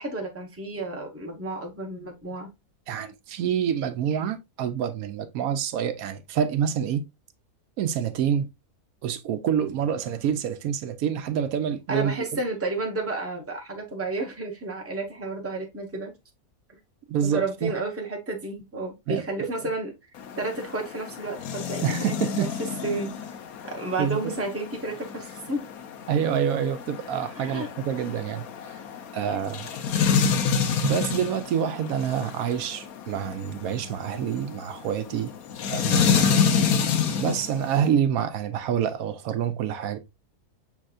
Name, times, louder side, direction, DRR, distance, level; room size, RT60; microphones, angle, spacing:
voice 1, 0.0-2.5 11.9-16.1 17.2-19.9 20.4-22.5 22.8-23.1 23.6-25.6 27.3-27.7 36.2-36.6, right 2 dB, 10° right, 0.9 m, -31 dB
voice 2, 2.9-7.0 7.8-8.5 9.0-12.2 17.1-17.7 19.1-19.5 21.8-22.5 24.0-24.3 26.1-28.5 29.1-29.7 30.8-35.3 35.7-36.4 37.2-40.0, right 8 dB, 80° right, 1.0 m, -27 dB
sound 1, 20.2-37.9, left 6 dB, 85° left, 1.2 m, -28 dB
6.4 x 3.5 x 2.4 m
omnidirectional pair, 1.5 m